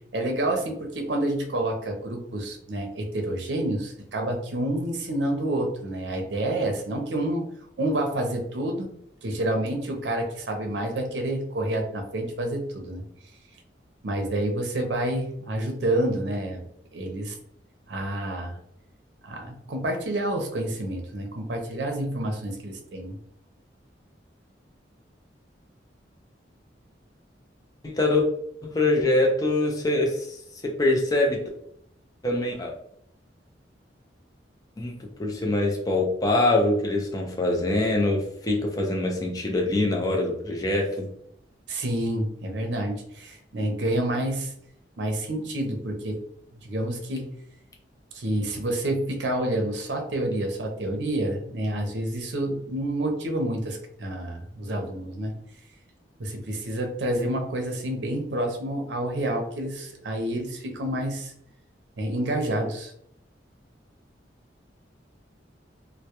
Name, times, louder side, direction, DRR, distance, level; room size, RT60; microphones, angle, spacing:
voice 1, 0.1-7.4 7.8-8.9 9.2-13.0 14.0-16.6 16.9-17.3 17.9-18.6 19.2-23.1 41.7-44.5 45.0-46.2 46.6-47.3 48.1-55.3 56.2-61.3 62.0-62.9, right 1 dB, 70° right, 3 dB, 0.5 m, -28 dB
voice 2, 27.8-28.2 28.6-30.4 30.6-31.4 32.2-32.7 34.8-41.1, left 2 dB, 20° left, 0 dB, 0.4 m, -24 dB
2.2 x 2.0 x 2.8 m, 0.70 s
head